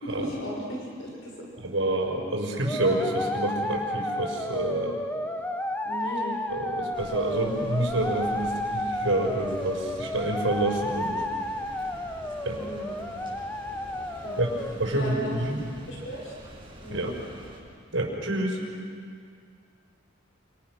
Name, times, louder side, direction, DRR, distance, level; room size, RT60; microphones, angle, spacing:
voice 1, 0.0-1.3 5.8-6.4 12.6-13.0 14.2-14.4 14.9-15.4 15.9-16.4 16.8-17.1, equal, 70° left, -2 dB, 5.8 m, -36 dB
voice 2, 1.6-5.0 6.5-11.2 12.5-12.6 14.4-14.5 14.8-15.6 16.9-17.2 17.9-18.6, right 1 dB, 75° right, 0 dB, 5.7 m, -28 dB
sound 1, 2.6-14.7, left 1 dB, 10° left, 1.0 m, -32 dB
sound 2, 6.9-17.6, right 1 dB, 25° right, 6.4 m, -46 dB
28.5 x 26.5 x 6.4 m, 2.3 s
head